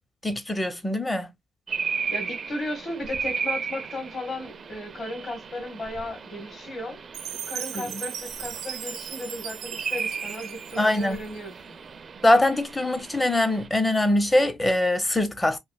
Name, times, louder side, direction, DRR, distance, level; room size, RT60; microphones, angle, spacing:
voice 1, 0.2-1.3 7.7-8.0 10.8-11.2 12.2-15.6, left 1 dB, 15° left, 0.6 m, -23 dB
sound 1, 1.7-13.7, right 6 dB, 45° right, 0.4 m, -35 dB
voice 2, 2.1-7.0 7.5-11.8, left 1 dB, 45° left, 1.2 m, -35 dB
Chime, 7.1-11.4, right 9 dB, 90° right, 0.7 m, -37 dB
3.1 x 2.5 x 2.3 m
cardioid pair, 95°, 0 cm